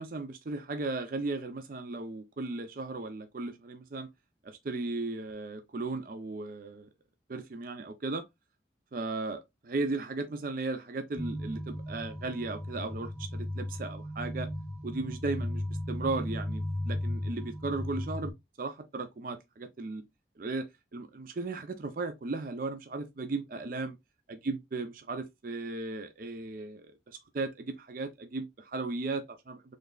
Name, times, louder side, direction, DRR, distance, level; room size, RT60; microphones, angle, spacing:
voice 1, 0.0-4.1 4.4-6.9 7.3-8.2 8.9-14.5 14.8-18.3 18.6-20.0 20.4-20.7 20.9-24.0 24.4-29.6, right 3 dB, 50° right, 0.5 m, -36 dB
sound 1, 11.2-18.3, left 1 dB, 10° right, 1.4 m, -36 dB
3.9 x 3.3 x 2.3 m
head